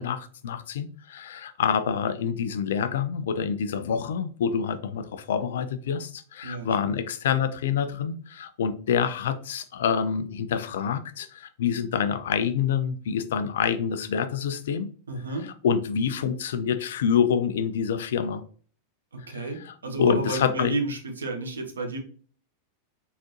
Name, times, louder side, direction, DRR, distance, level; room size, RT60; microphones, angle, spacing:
voice 1, 0.0-14.9 15.3-18.4 19.3-20.8, left 7 dB, 60° left, 0.5 m, -27 dB
voice 2, 15.1-15.5 19.1-22.0, right 2 dB, 70° right, 1.0 m, -31 dB
4.2 x 4.0 x 2.9 m
figure-of-eight pair, 90°, 0 cm